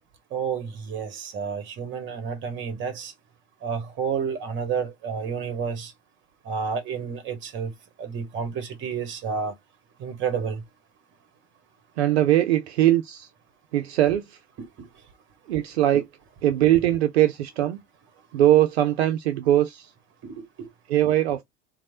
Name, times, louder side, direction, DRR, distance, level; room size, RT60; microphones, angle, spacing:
voice 1, 0.3-3.1 3.6-5.9 6.4-7.7 8.0-9.5 10.0-10.6 14.6-14.9 15.9-16.0 20.2-20.7, right 6 dB, 35° right, 1.0 m, -30 dB
voice 2, 12.0-13.3 13.7-14.2 15.5-16.0 16.4-17.8 18.3-19.9 20.9-21.4, right 13 dB, 65° right, 0.5 m, -21 dB
3.1 x 2.1 x 2.7 m
figure-of-eight pair, 80°, 34 cm